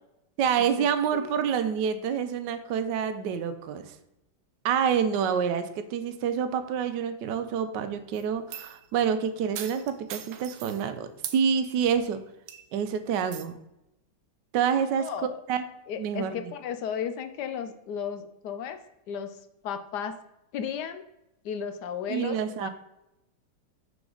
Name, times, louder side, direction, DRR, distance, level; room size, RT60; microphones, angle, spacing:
voice 1, 0.4-4.0 4.6-12.2 12.7-13.6 14.5-15.1 15.5-15.6 16.0-16.5 22.1-22.7, right 7 dB, 65° right, 10 dB, 1.2 m, -27 dB
sound 1, 8.1-8.8 9.6-10.8 11.2-11.4 11.9-12.1 12.5-12.8 13.3-13.5, right 10 dB, 85° right, 1.7 m, -39 dB
voice 2, 14.9-15.4 15.9-18.8 19.1-19.4 19.6-20.2 20.5-21.0 21.4-22.7, left 7 dB, 70° left, 9 dB, 1.0 m, -34 dB
6.6 x 6.1 x 3.8 m, 0.88 s
omnidirectional pair, 2.4 m